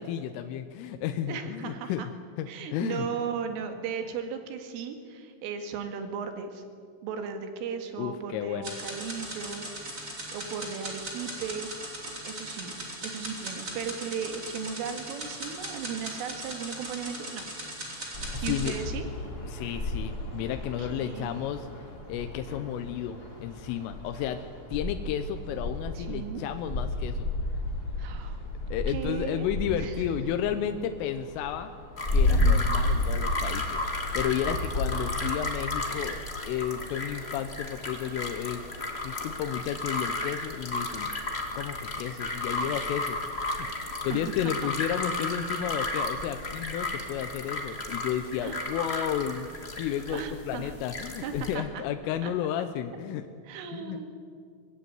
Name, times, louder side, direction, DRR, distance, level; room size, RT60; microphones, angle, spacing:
voice 1, 0.0-2.1 2.4-3.1 8.0-8.8 18.3-18.8 19.5-21.7 22.1-24.4 24.7-27.3 28.7-31.7 32.1-38.7 39.0-41.1 41.6-43.7 44.0-49.5 49.7-53.3 53.7-54.0, left 10 dB, 90° left, 8 dB, 3.5 m, -32 dB
voice 2, 1.3-2.1 2.5-6.6 7.0-10.0 10.3-11.7 12.2-12.7 13.0-17.4 18.4-19.1 20.8-21.4 25.9-26.4 28.0-28.4 28.9-29.5 29.8-30.0 32.3-32.6 44.1-44.2 48.4-48.7 50.1-50.7 51.2-51.8 52.2-52.3 53.4-54.2, right 6 dB, 90° right, 7 dB, 4.6 m, -36 dB
sound 1, 8.6-18.7, right 1 dB, 15° right, 4.0 m, -39 dB
sound 2, 18.1-36.1, left 2 dB, 20° left, 3.8 m, -32 dB
sound 3, 32.0-51.5, left 2 dB, 50° left, 0.7 m, -34 dB
24.0 x 19.0 x 9.5 m, 2.2 s
omnidirectional pair, 5.7 m